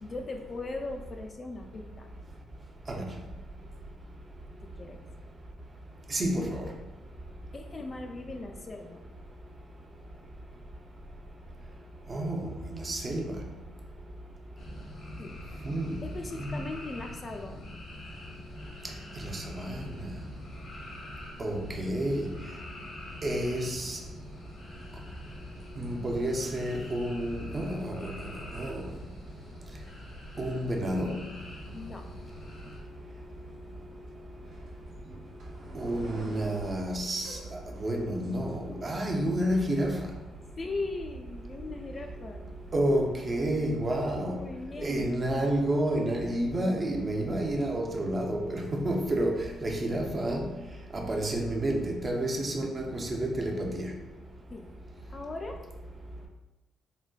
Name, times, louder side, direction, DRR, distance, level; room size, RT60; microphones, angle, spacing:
voice 1, 0.0-2.1 4.6-5.0 7.5-9.0 15.2-15.4 16.0-17.8 31.7-32.1 40.6-42.4 44.3-45.1 51.2-51.3 54.5-54.7 55.1-55.6, left 3 dB, 35° left, 3 dB, 0.3 m, -39 dB
voice 2, 6.1-6.6 12.1-12.4 12.7-13.3 15.6-16.0 16.4-16.5 19.3-19.7 21.4-22.3 23.2-24.0 25.8-28.1 28.6-28.8 30.4-31.2 35.7-37.4 37.8-40.0 42.7-44.4 44.8-50.5 50.9-53.9, right 1 dB, 35° right, 1 dB, 0.5 m, -30 dB
sound 1, 14.6-32.8, left 1 dB, 60° left, 0.8 m, -45 dB
Dog, 31.3-42.8, right 3 dB, 85° right, 1.0 m, -51 dB
sound 2, 34.4-39.1, right 1 dB, 60° right, 0.8 m, -48 dB
3.9 x 2.1 x 2.3 m, 1.1 s
cardioid pair, 90°, 0 cm